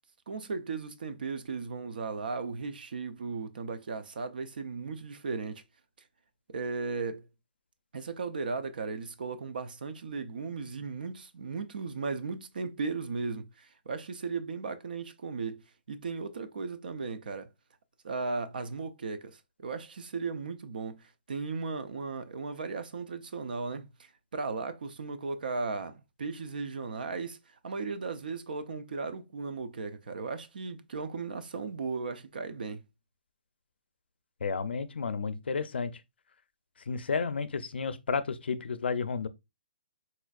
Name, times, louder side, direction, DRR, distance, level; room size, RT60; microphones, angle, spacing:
voice 1, 0.3-5.6 6.5-7.3 7.9-15.6 15.9-17.5 18.0-27.4 27.6-32.8, right 4 dB, 60° right, 0.5 m, -36 dB
voice 2, 34.4-35.9 36.9-39.3, left 5 dB, 90° left, 0.5 m, -32 dB
4.2 x 2.5 x 2.3 m
hypercardioid pair, 175°, 6 cm